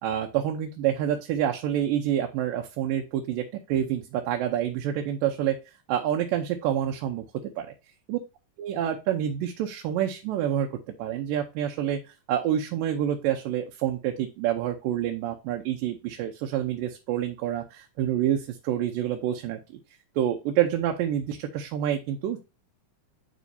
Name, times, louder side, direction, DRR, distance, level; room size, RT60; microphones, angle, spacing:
voice 1, 0.0-5.6 5.9-7.2 7.6-7.7 8.1-8.2 8.6-12.0 12.3-19.6 20.2-22.4, right 10 dB, 85° right, 3 dB, 2.4 m, -27 dB
11.0 x 4.4 x 2.7 m, 0.28 s
omnidirectional pair, 3.9 m